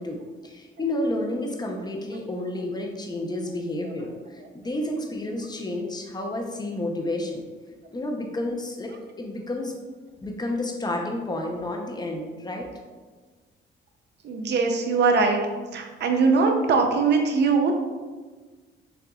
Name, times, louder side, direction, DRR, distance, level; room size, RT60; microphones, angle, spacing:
voice 1, 0.0-7.4 7.9-9.8 10.2-12.7, left 1 dB, 20° left, 1 dB, 0.7 m, -30 dB
voice 2, 14.2-15.4 15.7-17.7, right 4 dB, 60° right, 3 dB, 0.6 m, -21 dB
6.8 x 2.5 x 2.4 m, 1.4 s
cardioid pair, 90°, 20 cm